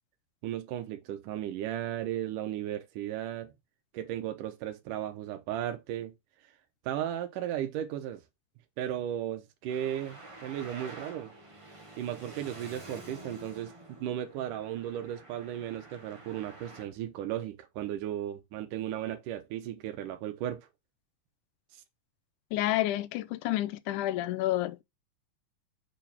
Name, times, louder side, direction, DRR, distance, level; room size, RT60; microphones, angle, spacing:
voice 1, 0.4-3.5 3.9-6.1 6.9-8.2 8.8-11.3 12.0-13.7 14.0-20.7, right 11 dB, 80° right, 2.5 m, -35 dB
Traffic noise roadway noise, 9.7-16.8, right 2 dB, 55° right, 0.3 m, -49 dB
voice 2, 22.5-24.8, left 15 dB, 85° left, 2.1 m, -29 dB
6.9 x 5.1 x 3.5 m
omnidirectional pair, 3.7 m